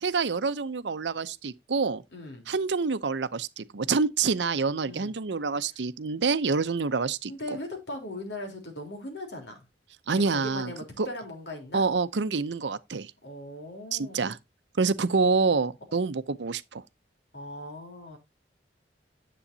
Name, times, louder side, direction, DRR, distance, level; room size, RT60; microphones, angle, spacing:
voice 1, 0.0-2.0 2.5-7.3 10.1-10.7 11.0-11.1 11.7-13.1 13.9-14.4 14.8-16.8, right 4 dB, 80° right, 0.7 m, -27 dB
voice 2, 2.1-2.5 4.8-5.1 7.3-9.6 10.1-11.9 13.2-14.3 15.9-16.0 17.3-18.2, left 1 dB, 75° left, 3.5 m, -39 dB
10.0 x 7.8 x 2.7 m
head